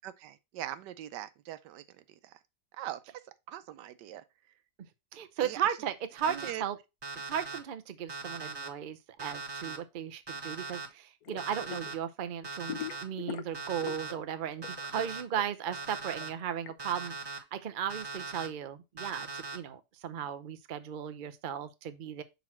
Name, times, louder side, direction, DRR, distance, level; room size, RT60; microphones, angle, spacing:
voice 1, 0.0-1.8 2.2-2.4 2.8-3.0 3.5-4.2 5.4-5.6 6.3-6.6, right 13 dB, 85° right, 1.3 m, -41 dB
voice 2, 5.1-6.8 7.3-22.2, right 9 dB, 65° right, 0.5 m, -36 dB
Alarm, 6.2-6.5 7.0-7.6 8.1-8.7 9.2-9.8 10.3-10.9 11.4-11.9 12.4-13.0 13.5-14.1 14.6-15.2 15.7-16.3 16.8-17.4 17.9-18.5 19.0-19.6, right 3 dB, 20° right, 0.7 m, -40 dB
sound 1, 11.2-11.9 12.2-14.3 14.5-16.7, left 11 dB, 65° left, 1.1 m, -41 dB
6.1 x 4.1 x 4.3 m
omnidirectional pair, 1.8 m